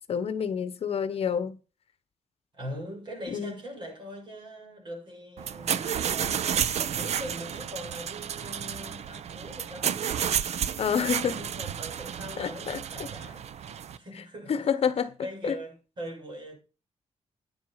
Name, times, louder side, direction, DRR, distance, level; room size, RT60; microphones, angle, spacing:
voice 1, 0.1-1.6 3.3-3.6 10.8-11.3 12.4-12.8 14.5-15.1 15.4-15.6, left 7 dB, 55° left, 1.1 m, -28 dB
voice 2, 2.5-13.5 13.9-14.7 15.2-16.6, equal, 40° right, 6.3 m, -42 dB
sound 1, 5.4-14.0, right 8 dB, 65° right, 0.7 m, -31 dB
9.9 x 7.4 x 5.7 m
wide cardioid pair, 150°, 12 cm